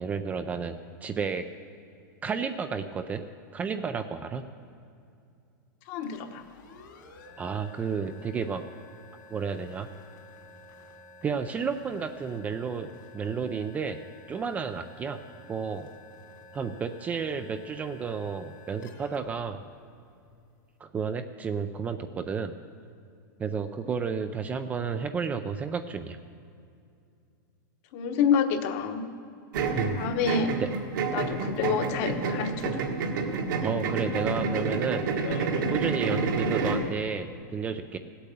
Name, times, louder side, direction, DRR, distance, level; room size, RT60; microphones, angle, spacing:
voice 1, 0.0-1.5 2.2-3.3 3.5-4.5 7.4-8.7 9.3-9.9 11.2-14.0 14.3-15.2 15.5-15.9 16.5-19.6 20.8-22.6 23.4-26.2 29.8-30.0 30.6-30.7 33.6-35.0 35.7-38.0, right 6 dB, 15° right, 9 dB, 0.4 m, -32 dB
voice 2, 5.9-6.4 27.9-29.1 29.9-30.6 31.1-33.1 35.2-35.6, left 7 dB, 40° left, 7 dB, 1.1 m, -28 dB
sound 1, 6.0-20.6, left 2 dB, 70° left, 2.8 m, -52 dB
sound 2, 29.5-36.9, right 4 dB, 70° right, 1.6 m, -29 dB
16.0 x 8.5 x 6.8 m, 2.4 s
supercardioid pair, 155°, 11 cm